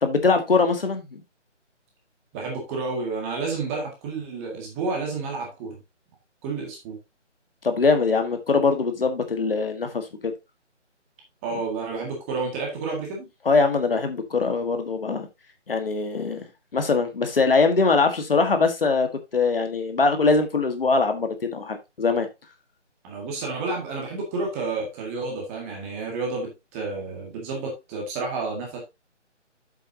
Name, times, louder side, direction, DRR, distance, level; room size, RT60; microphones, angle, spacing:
voice 1, 0.0-1.2 7.6-10.3 13.4-15.3 15.7-16.5 16.7-22.3, left 4 dB, 50° left, 1.6 m, -22 dB
voice 2, 2.3-5.8 6.4-7.0 11.4-13.3 23.0-28.8, right 3 dB, 10° right, 1.8 m, -30 dB
8.3 x 8.1 x 2.7 m
figure-of-eight pair, 155°, 36 cm